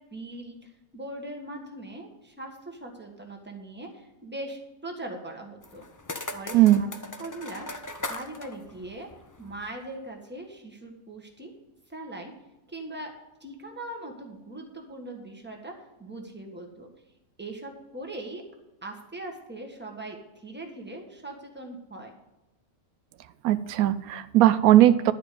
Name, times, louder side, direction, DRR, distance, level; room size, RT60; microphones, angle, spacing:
voice 1, 0.0-5.9 6.3-6.9 7.2-7.8 8.1-9.1 9.4-11.5 11.9-12.3 12.7-13.1 13.4-15.7 16.0-16.9 17.4-18.4 18.8-22.1, right 2 dB, 10° right, 1 dB, 1.4 m, -40 dB
sound 1, 5.6-9.8, left 2 dB, 20° left, 0.5 m, -39 dB
voice 2, 23.4-25.1, right 13 dB, 85° right, 14 dB, 1.0 m, -18 dB
11.5 x 5.0 x 8.4 m, 1.0 s
omnidirectional pair, 1.5 m